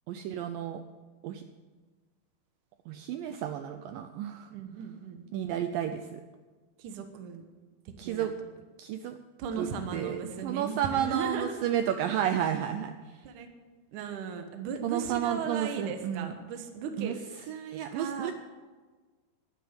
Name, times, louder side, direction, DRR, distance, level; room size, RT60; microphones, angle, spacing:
voice 1, 0.1-0.8 1.2-1.4 2.9-4.5 5.3-6.2 8.0-8.3 8.8-9.2 9.6-13.2 14.8-16.3 17.0-17.1 17.5-18.3, right 10 dB, 85° right, 8 dB, 1.9 m, -32 dB
voice 2, 4.5-5.2 6.8-7.4 8.0-8.3 9.4-11.5 13.2-13.5 13.9-17.2 17.9-18.3, right 6 dB, 65° right, 6 dB, 2.2 m, -37 dB
11.5 x 11.0 x 8.8 m, 1.4 s
omnidirectional pair, 4.7 m